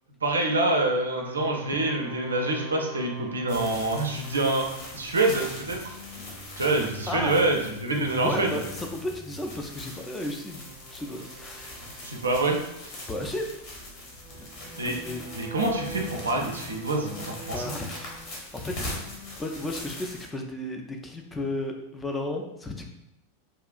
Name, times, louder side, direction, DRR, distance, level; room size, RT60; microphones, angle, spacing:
voice 1, 0.2-4.7 4.9-5.8 6.6-8.5 12.0-12.9 14.8-14.9 15.4-17.6, right 2 dB, 75° right, 2 dB, 0.4 m, -26 dB
sound 1, 1.3-19.3, right 1 dB, 30° right, 0.6 m, -45 dB
sound 2, 3.5-20.3, left 1 dB, 45° left, 0.8 m, -42 dB
voice 2, 7.1-7.4 7.9-11.9 13.1-13.5 14.4-15.2 17.5-18.1 18.5-19.0 19.4-22.9, left 1 dB, 10° left, 2 dB, 0.3 m, -34 dB
2.9 x 2.3 x 2.3 m, 0.86 s
figure-of-eight pair, 90°, 0 cm